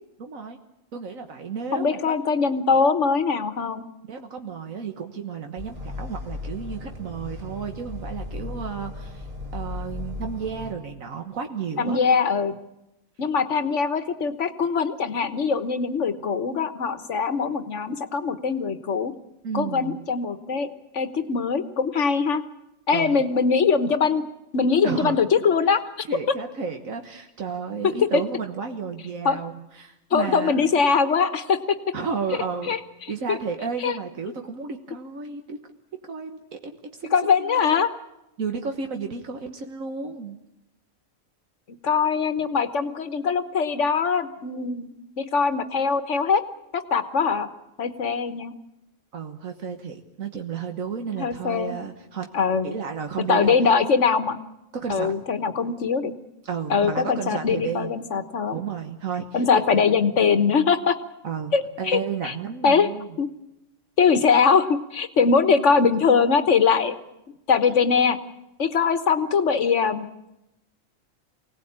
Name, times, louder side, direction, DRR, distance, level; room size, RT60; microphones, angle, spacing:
voice 1, 0.2-0.6 0.9-2.2 4.1-9.3 9.5-12.0 19.4-20.0 22.9-23.3 24.8-25.2 26.1-30.6 31.9-32.8 33.1-37.7 38.4-40.4 49.1-52.3 52.6-53.6 54.7-55.2 56.4-57.9 58.5-59.4 59.7-59.8 61.2-63.1, right 6 dB, 80° right, 5 dB, 1.8 m, -32 dB
voice 2, 1.7-3.8 11.8-12.5 13.2-19.1 19.5-20.7 20.9-22.4 22.9-24.2 24.5-26.1 28.0-28.1 29.2-29.4 30.1-31.6 32.7-32.8 33.3-33.4 33.8-34.0 37.1-37.9 41.8-46.4 46.7-47.5 47.8-48.5 51.1-51.7 52.3-52.7 53.3-54.4 54.9-56.1 56.7-58.6 59.3-61.0 61.5-62.3 62.6-62.9 63.2-63.3 64.0-66.9 67.5-68.2 68.6-70.1, left 5 dB, 60° left, 11 dB, 1.5 m, -22 dB
sound 1, 5.6-10.7, left 2 dB, 45° right, 3.4 m, -36 dB
24.5 x 18.0 x 8.8 m, 0.90 s
omnidirectional pair, 1.4 m